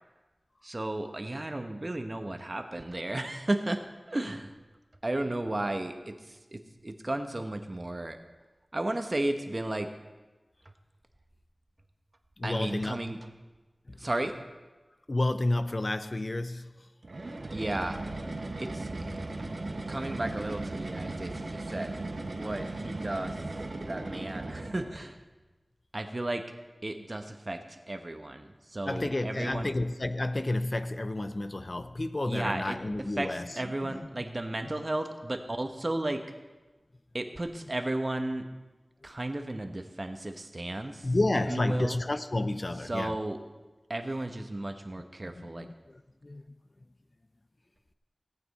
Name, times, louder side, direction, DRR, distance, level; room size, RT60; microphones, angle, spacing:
voice 1, 0.6-3.8 4.1-4.5 5.0-8.2 8.7-9.9 12.4-13.2 14.0-14.3 17.5-18.0 18.6-18.9 19.9-21.9 22.3-23.4 23.8-25.2 25.9-26.5 26.8-29.7 32.3-36.2 37.1-38.5 39.0-41.1 41.5-42.0 42.8-43.4 43.9-45.7, right 1 dB, 40° right, 6 dB, 1.0 m, -34 dB
voice 2, 12.4-13.0 15.1-16.7 28.9-34.1 34.7-34.8 41.0-43.2 45.3-46.4, left 2 dB, 45° left, 11 dB, 0.5 m, -31 dB
sound 1, 17.0-25.1, right 2 dB, 70° right, 1.1 m, -37 dB
17.5 x 8.8 x 4.2 m, 1.2 s
wide cardioid pair, 65°, 0 cm